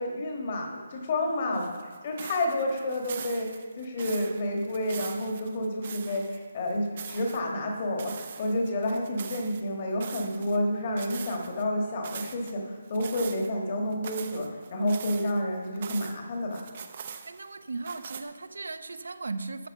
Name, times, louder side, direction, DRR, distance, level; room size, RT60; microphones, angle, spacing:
voice 1, 0.0-1.7 2.0-16.6, left 1 dB, 25° left, 2 dB, 1.4 m, -30 dB
sound 1, 1.5-6.4 6.7-7.4 8.0-9.6 10.0-10.6 11.0-11.6 12.0-12.5 12.9-13.5 13.9-16.2 16.5-17.5 17.9-18.2, right 7 dB, 25° right, 0.6 m, -42 dB
voice 2, 17.3-19.7, right 3 dB, 75° right, 10 dB, 0.8 m, -37 dB
12.5 x 5.5 x 7.1 m, 1.4 s
hypercardioid pair, 175°, 0 cm